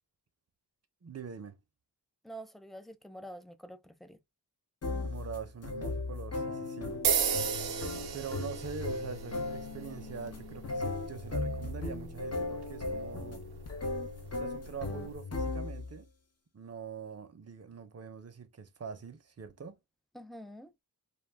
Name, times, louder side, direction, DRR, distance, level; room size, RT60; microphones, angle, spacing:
voice 1, 1.0-1.6 5.0-7.0 8.1-13.4 14.4-16.1 16.5-19.8, right 6 dB, 40° right, 0.6 m, -44 dB
voice 2, 2.2-4.2 20.1-20.7, right 1 dB, ahead, 0.3 m, -47 dB
sound 1, 4.8-16.0, left 3 dB, 40° left, 0.6 m, -37 dB
sound 2, 7.0-15.2, right 7 dB, 80° right, 0.5 m, -37 dB
2.3 x 2.1 x 3.2 m
wide cardioid pair, 55°, 38 cm